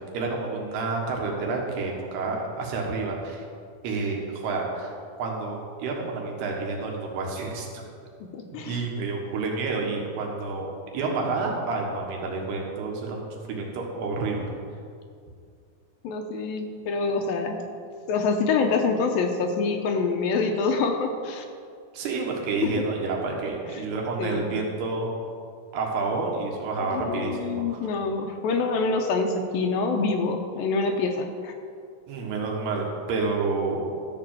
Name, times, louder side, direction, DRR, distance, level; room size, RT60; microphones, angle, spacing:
voice 1, 0.1-3.5 3.8-7.9 8.5-14.6 21.9-25.1 25.7-27.8 32.1-33.9, right 3 dB, 85° right, 0 dB, 3.6 m, -29 dB
voice 2, 8.3-8.8 16.0-17.6 18.1-21.5 24.2-24.5 26.9-31.5, left 4 dB, 75° left, 4 dB, 2.3 m, -26 dB
13.5 x 4.9 x 7.6 m, 2.3 s
omnidirectional pair, 4.5 m